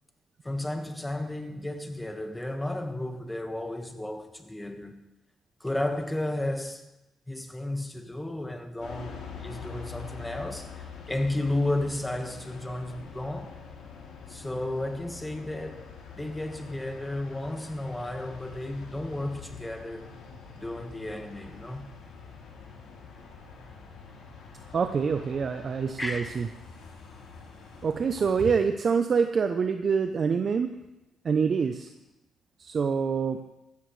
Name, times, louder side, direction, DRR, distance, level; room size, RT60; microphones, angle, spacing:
voice 1, 0.4-5.0 5.6-6.8 7.3-13.5 14.3-15.9 16.2-20.1 20.6-21.8 26.0-26.5, left 1 dB, 10° left, 1.5 m, -33 dB
sound 1, 8.8-28.6, left 5 dB, 80° left, 2.9 m, -45 dB
voice 2, 24.7-26.5 27.8-30.7 31.2-31.9 32.6-33.4, right 6 dB, 45° right, 0.7 m, -26 dB
15.5 x 14.0 x 3.3 m
cardioid pair, 90°, 0 cm